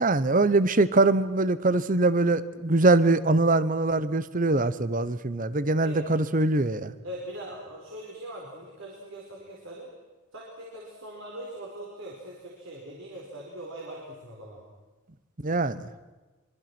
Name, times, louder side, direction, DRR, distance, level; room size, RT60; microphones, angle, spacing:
voice 1, 0.0-6.9 15.4-15.9, right 2 dB, 40° right, 15 dB, 0.9 m, -23 dB
voice 2, 7.0-9.9 10.3-14.6, right 1 dB, 60° right, -2 dB, 4.6 m, -41 dB
25.0 x 24.0 x 6.1 m, 1.2 s
head